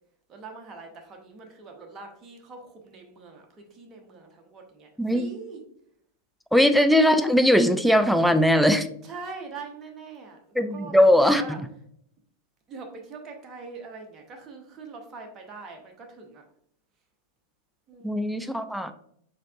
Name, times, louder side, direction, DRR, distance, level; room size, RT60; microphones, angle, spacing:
voice 1, 0.3-5.6 9.0-11.0 11.3-11.6 12.7-16.4 17.9-18.3, right 4 dB, 25° right, 2 dB, 0.7 m, -43 dB
voice 2, 5.0-5.3 6.5-8.9 10.6-11.4 18.0-18.9, equal, ahead, 9 dB, 0.3 m, -20 dB
4.4 x 3.5 x 2.3 m, 0.68 s
figure-of-eight pair, 90°, 0 cm